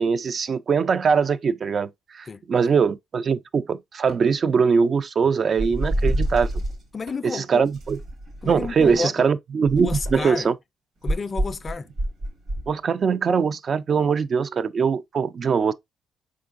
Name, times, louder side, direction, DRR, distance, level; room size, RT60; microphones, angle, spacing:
voice 1, 0.0-6.6 7.2-8.0 8.4-10.5 12.7-15.7, right 6 dB, 50° right, 0.3 m, -22 dB
sound 1, 1.1-2.0 4.1-4.5 7.1-7.5 10.1-10.5, right 3 dB, 80° right, 2.4 m, -49 dB
voice 2, 2.3-2.7 6.9-7.7 8.4-9.3 9.8-10.5 11.0-11.9, left 4 dB, 35° left, 0.3 m, -31 dB
sound 2, 5.6-6.8 7.7-9.0 9.6-10.3 11.1-12.7, right 1 dB, 65° right, 1.7 m, -27 dB
4.4 x 3.6 x 2.4 m
cardioid pair, 90°, 0 cm